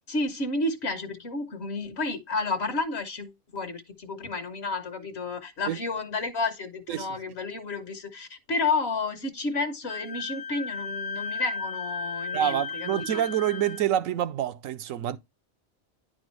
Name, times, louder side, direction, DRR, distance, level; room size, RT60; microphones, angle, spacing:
voice 1, 0.1-13.2, left 3 dB, 55° left, 1.1 m, -31 dB
Wind instrument woodwind instrument, 9.9-13.8, left 5 dB, 90° left, 1.2 m, -35 dB
voice 2, 12.3-15.2, right 11 dB, 75° right, 1.0 m, -27 dB
10.0 x 4.4 x 3.1 m
omnidirectional pair, 1.4 m